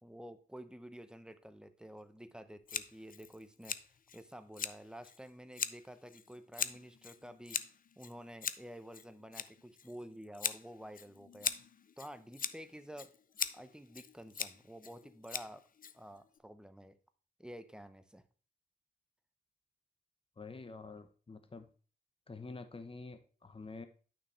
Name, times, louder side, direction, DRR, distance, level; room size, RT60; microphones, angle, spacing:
voice 1, 0.0-3.8 4.1-7.7 8.0-11.5 12.0-13.1 13.5-15.6 15.9-17.0 17.4-18.2, equal, 5° right, 11 dB, 0.8 m, -50 dB
Scissors, 2.7-16.4, left 7 dB, 50° left, 0.5 m, -42 dB
voice 2, 20.4-21.7 22.3-23.9, left 3 dB, 30° left, 9 dB, 0.9 m, -48 dB
9.6 x 5.8 x 3.3 m, 0.39 s
cardioid pair, 70°, 18 cm